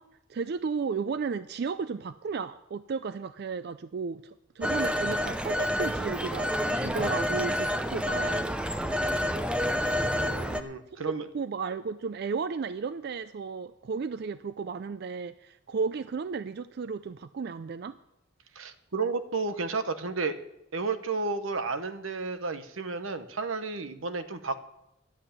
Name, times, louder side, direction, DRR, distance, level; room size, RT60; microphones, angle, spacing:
voice 1, 0.0-8.5 10.9-11.0 11.3-18.0, right 5 dB, 55° right, 13 dB, 0.4 m, -34 dB
Telephone, 4.6-10.6, equal, 5° right, 0.5 m, -28 dB
voice 2, 10.1-11.3 18.5-20.4 20.7-24.7, right 4 dB, 90° right, 10 dB, 1.0 m, -32 dB
11.0 x 7.9 x 8.5 m, 0.85 s
head